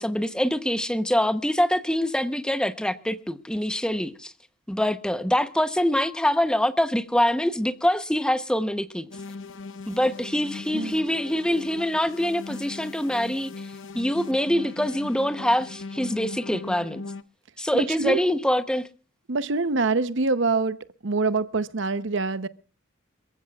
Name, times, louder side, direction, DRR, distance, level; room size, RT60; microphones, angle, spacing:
voice 1, 0.0-4.3 4.7-9.1 9.9-17.0 17.6-18.9, equal, 5° left, 0.8 m, -25 dB
sound 1, 9.1-17.2, left 3 dB, 65° left, 0.7 m, -39 dB
voice 2, 17.7-18.2 19.3-22.5, right 3 dB, 60° right, 0.8 m, -25 dB
28.0 x 15.0 x 2.4 m
head